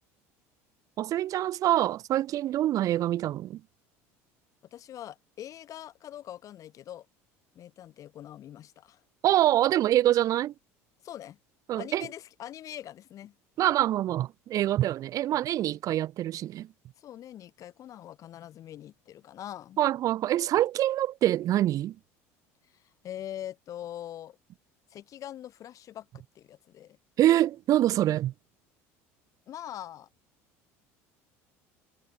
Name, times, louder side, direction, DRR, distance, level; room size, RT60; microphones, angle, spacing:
voice 1, 1.0-3.6 9.2-10.5 11.7-12.1 13.6-16.7 19.8-21.9 27.2-28.3, right 13 dB, 50° right, 1.0 m, -25 dB
voice 2, 4.7-7.1 7.5-9.0 11.0-11.4 11.7-13.3 17.0-19.8 22.7-24.4 24.9-27.0 29.5-30.1, left 11 dB, 50° left, 2.6 m, -43 dB
supercardioid pair, 90°, 7 cm